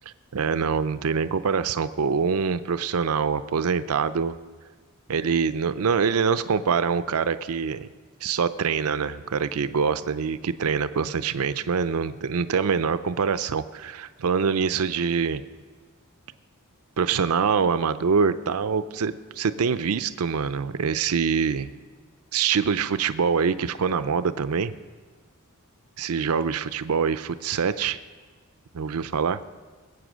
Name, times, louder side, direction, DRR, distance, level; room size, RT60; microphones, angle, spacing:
voice 1, 0.0-4.3 5.1-7.9 8.2-15.4 17.0-21.7 22.3-24.7 26.0-28.0 28.7-29.4, right 6 dB, 75° right, 13 dB, 0.5 m, -25 dB
21.0 x 8.5 x 6.2 m, 1.5 s
head